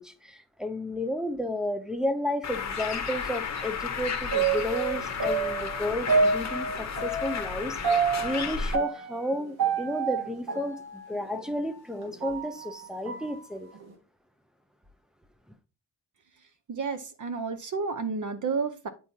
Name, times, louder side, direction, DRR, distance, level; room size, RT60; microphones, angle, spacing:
voice 1, 0.0-10.8 11.1-13.7, left 1 dB, ahead, 0.4 m, -32 dB
Bird, 2.4-8.8, left 6 dB, 40° left, 0.8 m, -33 dB
sound 1, 4.3-11.5 12.0-13.3 13.7-13.8, right 5 dB, 65° right, 1.8 m, -28 dB
voice 2, 16.7-18.9, right 4 dB, 50° right, 0.7 m, -31 dB
8.6 x 4.7 x 2.7 m
wide cardioid pair, 165°, 41 cm